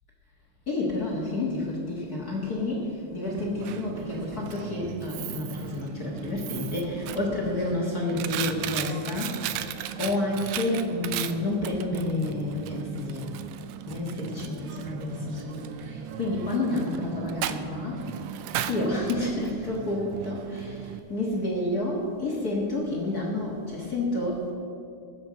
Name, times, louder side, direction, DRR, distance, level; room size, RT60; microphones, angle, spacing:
voice 1, 0.7-13.3 13.9-18.0 18.7-24.5, left 2 dB, 40° left, -3 dB, 1.6 m, -30 dB
Coin (dropping), 3.2-21.0, right 11 dB, 80° right, 1.6 m, -36 dB
20.0 x 7.2 x 5.3 m, 2.5 s
omnidirectional pair, 3.6 m